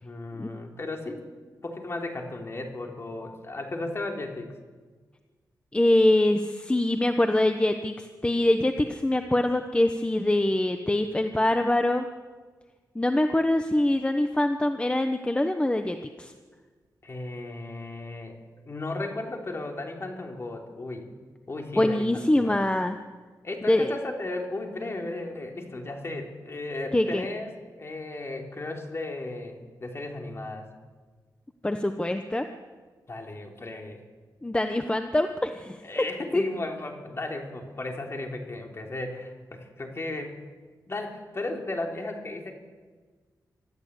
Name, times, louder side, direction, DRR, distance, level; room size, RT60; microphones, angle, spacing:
voice 1, 0.0-1.3 1.6-4.5 17.0-18.4 18.7-21.1 21.5-22.6 23.4-30.7 33.1-34.0 35.8-40.4 40.9-42.5, left 2 dB, 35° left, 2 dB, 3.5 m, -35 dB
voice 2, 5.7-12.1 12.9-16.3 21.8-23.0 23.7-23.9 26.9-27.3 31.6-32.5 34.4-36.0 36.3-36.4, left 1 dB, 15° left, 7 dB, 1.0 m, -24 dB
25.0 x 13.5 x 8.4 m, 1.4 s
wide cardioid pair, 95°, 7 cm